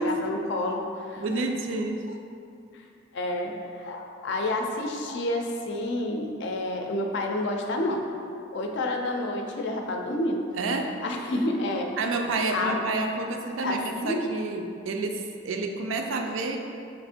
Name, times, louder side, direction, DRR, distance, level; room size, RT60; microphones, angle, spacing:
voice 1, 0.0-1.4 2.7-2.8 3.1-8.1 8.5-10.4 11.0-11.9 12.5-12.8 13.5-14.2, left 1 dB, 65° left, 3 dB, 0.4 m, -29 dB
voice 2, 1.2-2.0 10.6-10.9 12.0-16.6, right 3 dB, 70° right, 4 dB, 0.4 m, -29 dB
3.3 x 3.0 x 4.3 m, 2.5 s
head